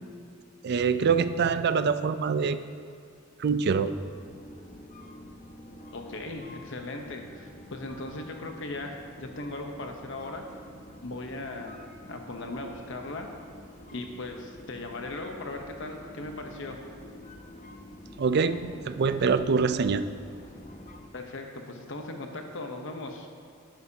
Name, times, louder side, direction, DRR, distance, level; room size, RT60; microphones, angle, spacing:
voice 1, 0.6-2.6 3.4-3.9 18.2-20.0, right 5 dB, 55° right, 12 dB, 0.4 m, -25 dB
sound 1, 3.6-21.1, left 1 dB, 35° left, 0.9 m, -48 dB
voice 2, 5.9-10.4 11.0-11.8 12.1-13.3 13.9-16.8 21.1-23.3, left 2 dB, 65° left, 3 dB, 0.9 m, -38 dB
12.5 x 10.5 x 2.8 m, 2.4 s
head